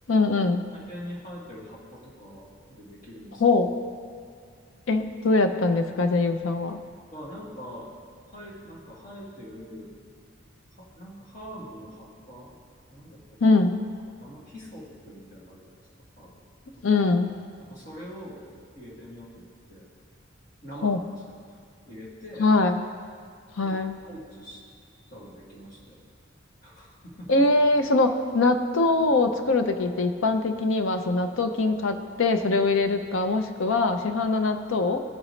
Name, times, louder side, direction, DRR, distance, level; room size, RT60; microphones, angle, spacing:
voice 1, 0.1-0.6 3.4-3.7 4.9-6.8 13.4-13.8 16.8-17.3 20.8-21.0 22.4-22.8 23.6-24.0 27.3-35.0, left 3 dB, 75° left, 7 dB, 0.6 m, -22 dB
voice 2, 0.7-3.4 7.1-7.9 8.3-9.9 10.8-12.6 12.9-13.6 14.2-15.8 16.2-16.4 16.7-17.0 17.6-18.4 18.7-19.9 20.6-21.0 21.3-21.4 21.9-22.5 23.6-23.8 24.1-24.6 25.1-26.0 26.6-27.5, equal, 40° left, -6 dB, 2.0 m, -43 dB
15.0 x 5.0 x 3.2 m, 2.2 s
head